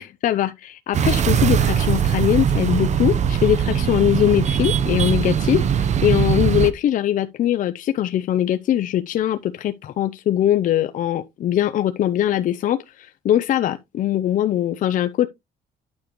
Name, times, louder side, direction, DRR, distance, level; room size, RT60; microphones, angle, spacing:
voice 1, 0.0-15.3, left 11 dB, 50° left, 0.5 m, -21 dB
sound 1, 0.9-6.7, right 8 dB, 45° right, 0.8 m, -20 dB
9.3 x 6.6 x 3.0 m
cardioid pair, 110°, 17 cm